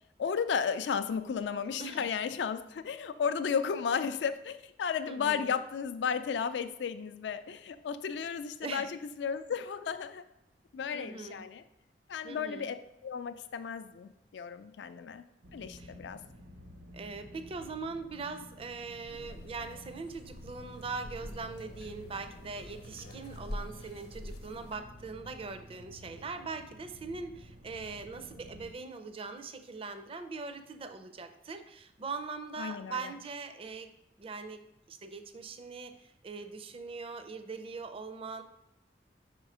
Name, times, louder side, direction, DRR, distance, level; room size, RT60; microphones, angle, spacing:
voice 1, 0.2-10.3 10.7-11.6 12.1-12.8 13.0-15.2 15.5-16.2 32.6-33.0, left 6 dB, 80° left, 10 dB, 0.4 m, -34 dB
voice 2, 5.1-5.5 8.6-8.9 10.9-11.5 12.2-12.7 15.8-15.9 16.9-33.9 34.2-34.6 34.9-38.4, right 4 dB, 35° right, 8 dB, 0.4 m, -41 dB
sound 1, 15.4-28.7, equal, 70° right, 0.8 m, -51 dB
sound 2, 19.1-24.8, left 1 dB, 65° left, 0.8 m, -46 dB
5.4 x 4.4 x 4.9 m, 0.84 s
head